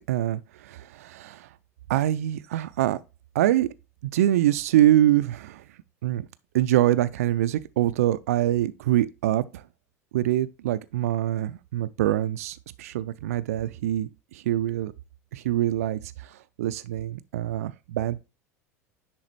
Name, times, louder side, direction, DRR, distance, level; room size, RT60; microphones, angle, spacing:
voice 1, 0.0-1.5 1.9-3.0 3.3-3.7 4.1-5.6 6.0-6.3 6.5-9.6 10.1-14.9 15.3-16.3 16.6-18.2, right 13 dB, 65° right, 0.4 m, -24 dB
10.0 x 3.8 x 3.2 m
figure-of-eight pair, 75°, 9 cm